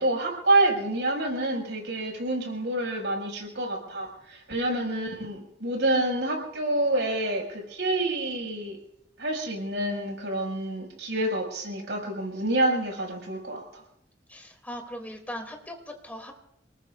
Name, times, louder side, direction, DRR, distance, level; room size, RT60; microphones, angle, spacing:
voice 1, 0.0-8.8 9.2-13.8, right 1 dB, 75° right, 0 dB, 6.0 m, -27 dB
voice 2, 14.7-15.7 16.1-16.3, equal, 10° left, 2 dB, 2.6 m, -38 dB
30.0 x 19.5 x 2.5 m, 0.76 s
head